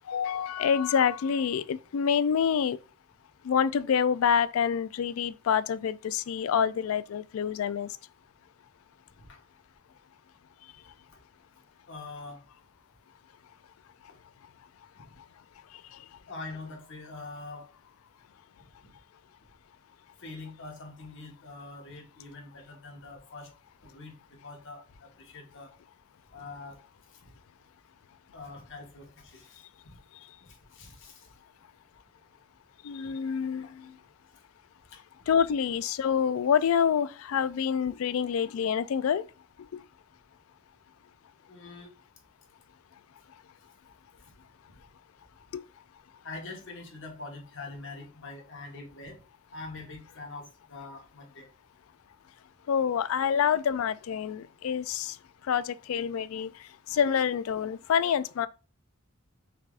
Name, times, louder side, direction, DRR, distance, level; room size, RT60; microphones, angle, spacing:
voice 1, 0.1-2.8 3.5-7.9 32.8-33.7 35.3-39.2 52.7-55.1 55.5-56.5 56.9-58.5, left 7 dB, 85° left, 0.4 m, -27 dB
voice 2, 11.9-12.4 16.3-17.7 18.8-18.9 20.2-23.5 23.8-25.7 26.3-26.8 27.2-27.3 28.3-30.0 30.4-31.3 33.6-34.0 34.9-35.0 41.5-41.9 44.2-44.3 46.2-49.2 49.5-51.5, left 3 dB, 60° left, 1.4 m, -44 dB
5.7 x 3.5 x 2.4 m
head